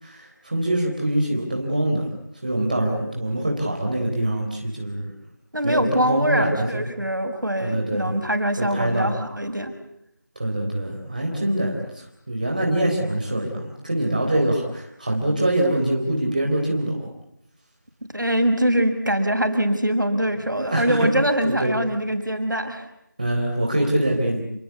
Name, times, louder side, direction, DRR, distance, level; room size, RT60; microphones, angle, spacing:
voice 1, 0.0-2.1 2.4-5.1 5.6-6.8 7.6-8.2 8.6-9.1 10.4-17.1 20.6-21.1 21.4-21.7 23.2-24.4, right 1 dB, 25° right, 0 dB, 3.9 m, -24 dB
voice 2, 5.5-9.7 18.1-22.9, equal, 75° right, 6 dB, 6.0 m, -23 dB
30.0 x 22.0 x 8.4 m, 0.80 s
figure-of-eight pair, 175°, 11 cm